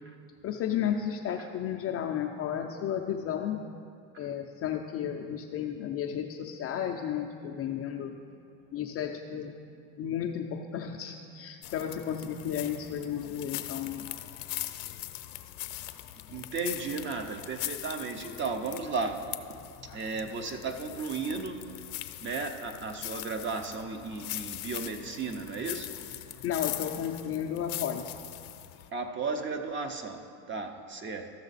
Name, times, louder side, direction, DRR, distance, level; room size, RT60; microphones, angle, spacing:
voice 1, 0.4-3.6 4.2-8.1 8.7-9.5 10.0-14.1 26.4-28.1, left 9 dB, 30° left, 2 dB, 0.4 m, -33 dB
sound 1, 11.6-28.9, left 16 dB, 65° left, 0.7 m, -41 dB
voice 2, 16.3-19.6 19.9-21.7 22.2-25.9 28.9-31.3, right 4 dB, 25° right, 6 dB, 0.6 m, -35 dB
13.5 x 6.4 x 4.0 m, 2.3 s
supercardioid pair, 115°, 48 cm